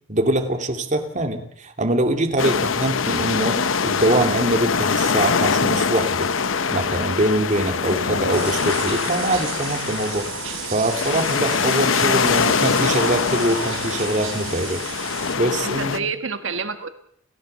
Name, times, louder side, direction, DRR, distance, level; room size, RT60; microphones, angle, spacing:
voice 1, 0.1-6.3 6.7-10.3 10.7-14.8 15.4-16.1, right 1 dB, 40° right, 5 dB, 2.6 m, -23 dB
sound 1, 2.4-16.0, left 5 dB, 70° left, 0.9 m, -23 dB
voice 2, 7.6-8.3 15.6-16.9, right 4 dB, 65° right, 9 dB, 1.6 m, -30 dB
sound 2, 8.3-15.3, right 7 dB, 90° right, 5.0 m, -33 dB
29.5 x 15.0 x 6.8 m, 0.68 s
head